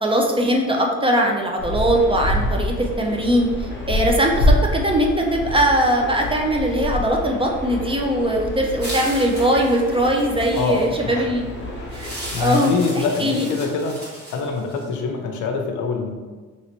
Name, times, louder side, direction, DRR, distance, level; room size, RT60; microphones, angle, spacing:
voice 1, 0.0-11.5 11.9-13.5, right 1 dB, 20° right, 1 dB, 0.5 m, -20 dB
sound 1, 1.6-12.5, left 1 dB, 40° left, 0.9 m, -27 dB
sound 2, 8.8-11.0 11.9-14.9, right 1 dB, 35° right, 1.4 m, -35 dB
voice 2, 10.5-11.3 12.3-14.0 14.3-16.1, left 4 dB, 75° left, 3 dB, 0.6 m, -24 dB
3.0 x 3.0 x 2.9 m, 1.4 s
cardioid pair, 90°, 30 cm